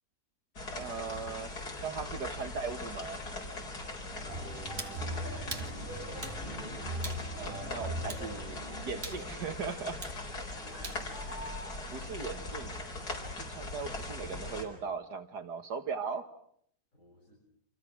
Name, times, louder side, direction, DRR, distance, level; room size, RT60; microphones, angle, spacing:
sound 1, 0.6-14.7, left 2 dB, 70° left, 5.0 m, -40 dB
voice 1, 0.7-1.5 1.8-3.2 7.4-10.0 11.9-12.8 13.4-16.3, right 5 dB, 75° right, 8 dB, 2.2 m, -38 dB
voice 2, 4.2-5.7 7.3-7.7 10.1-10.8 16.9-17.4, equal, 45° left, -4 dB, 8.3 m, -60 dB
sound 2, 4.3-12.3, right 1 dB, 30° right, 6.6 m, -42 dB
sound 3, 4.8-5.0 5.5-5.7 6.2-6.4 7.0-7.2 8.1-8.3 9.0-9.2 10.0-10.2 10.8-11.0, right 3 dB, 45° right, 2.6 m, -41 dB
29.5 x 27.5 x 6.2 m, 0.66 s
omnidirectional pair, 1.8 m